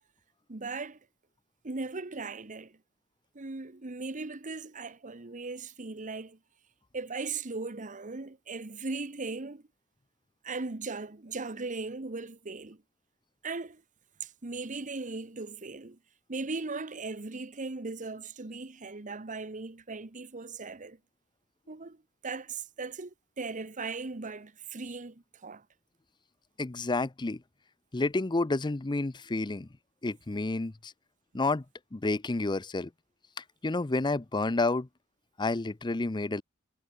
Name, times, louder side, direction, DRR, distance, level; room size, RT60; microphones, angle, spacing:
voice 1, 0.5-1.0 1.6-2.8 3.3-6.4 6.9-9.6 10.4-12.8 13.4-13.8 14.2-16.0 16.3-21.0 21.7-22.0 22.2-25.6, right 3 dB, 35° right, 1.1 m, -38 dB
voice 2, 26.6-27.4 27.9-29.7 30.0-30.9 31.3-31.6 31.9-32.9 33.4-34.9 35.4-36.4, left 2 dB, 20° left, 0.6 m, -30 dB
head